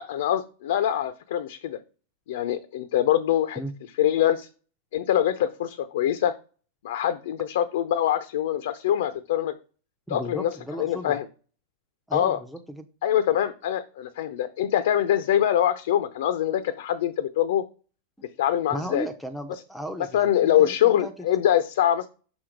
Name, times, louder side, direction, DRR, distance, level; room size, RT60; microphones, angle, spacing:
voice 1, 0.0-1.8 2.3-3.6 4.0-4.5 4.9-6.3 6.8-9.5 10.1-11.3 12.1-12.4 13.0-17.6 18.4-19.1 19.5-19.6 20.1-22.1, left 11 dB, 70° left, 11 dB, 0.5 m, -24 dB
voice 2, 10.1-11.2 12.1-12.9 18.7-20.1 20.4-20.7 21.0-21.1, right 1 dB, ahead, 7 dB, 0.5 m, -35 dB
6.2 x 3.7 x 5.0 m, 0.37 s
supercardioid pair, 155°, 0 cm